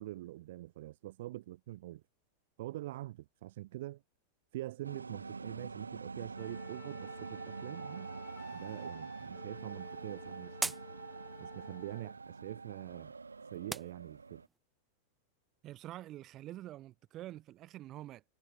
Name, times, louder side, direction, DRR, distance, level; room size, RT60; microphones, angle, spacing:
voice 1, 0.0-2.0 2.6-4.0 4.5-8.1 8.5-10.8 11.4-13.1 13.5-14.4, right 16 dB, 55° right, 0.6 m, -44 dB
sound 1, 4.8-14.5, right 4 dB, 75° right, 1.0 m, -46 dB
Wind instrument woodwind instrument, 6.3-12.2, left 15 dB, 35° left, 2.8 m, -55 dB
sound 2, 9.1-14.6, right 3 dB, 10° right, 1.1 m, -45 dB
voice 2, 15.6-18.2, right 14 dB, 35° right, 2.7 m, -47 dB
figure-of-eight pair, 90°, 0 cm